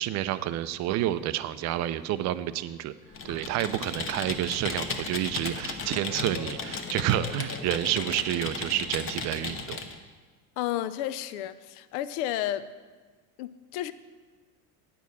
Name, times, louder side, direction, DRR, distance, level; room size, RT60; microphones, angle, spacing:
voice 1, 0.0-2.9 3.2-9.8, right 13 dB, 40° right, 13 dB, 0.4 m, -29 dB
Computer keyboard, 3.1-9.9, left 4 dB, 30° left, 0.9 m, -35 dB
voice 2, 10.6-12.7 13.4-13.9, left 12 dB, 70° left, 14 dB, 0.6 m, -32 dB
9.3 x 4.7 x 7.0 m, 1.4 s
supercardioid pair, 105°, 46 cm